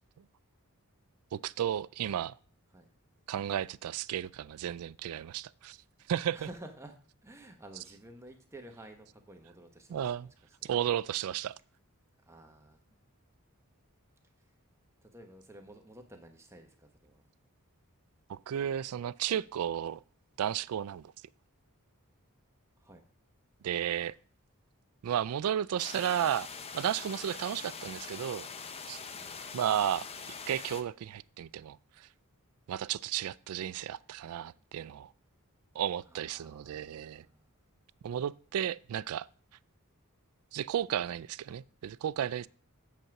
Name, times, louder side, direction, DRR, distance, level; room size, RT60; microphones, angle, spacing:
voice 1, 1.3-2.4 3.3-5.8 6.1-6.4 9.9-10.3 10.6-11.6 18.3-20.0 20.4-21.1 23.6-24.1 25.0-26.5 26.7-28.5 28.9-29.0 29.5-32.1 32.7-35.1 35.7-37.3 38.0-39.3 40.5-42.5, right 10 dB, 75° right, 0.3 m, -33 dB
voice 2, 6.3-7.0 7.2-10.3 10.6-10.7 12.2-12.8 15.0-17.2 22.8-23.0 29.1-29.4 36.1-37.5, right 1 dB, 10° right, 0.9 m, -52 dB
sound 1, 25.8-30.8, left 5 dB, 25° left, 0.6 m, -43 dB
7.5 x 5.4 x 5.8 m
head